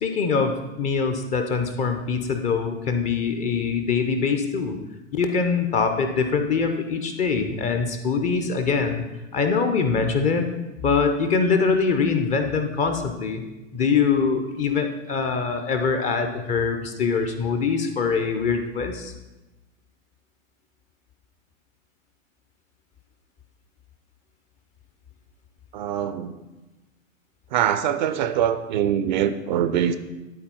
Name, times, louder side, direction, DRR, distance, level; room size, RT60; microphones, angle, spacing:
voice 1, 0.0-4.8 5.1-9.0 9.3-10.5 10.8-13.4 13.7-19.1, left 5 dB, 20° left, 7 dB, 0.5 m, -23 dB
voice 2, 25.7-26.4 27.5-29.9, right 10 dB, 35° right, 10 dB, 0.5 m, -23 dB
11.0 x 4.2 x 5.5 m, 1.1 s
figure-of-eight pair, 100°, 40 cm